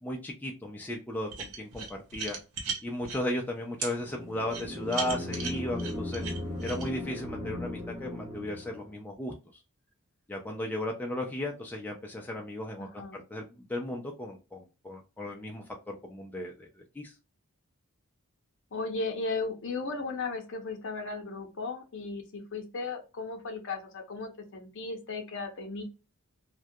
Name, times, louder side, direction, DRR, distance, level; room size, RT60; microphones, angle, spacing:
voice 1, 0.0-2.4 2.8-6.3 6.6-9.3 10.3-17.1, left 1 dB, 10° left, 0 dB, 0.3 m, -35 dB
sound 1, 1.3-3.2 3.8-3.9 4.5-6.9, right 5 dB, 75° right, 0.8 m, -36 dB
sound 2, 4.0-8.9, left 1 dB, 25° right, 0.9 m, -37 dB
voice 2, 12.8-13.2 18.7-25.8, left 3 dB, 60° left, 4 dB, 0.6 m, -36 dB
2.2 x 2.1 x 2.6 m, 0.30 s
head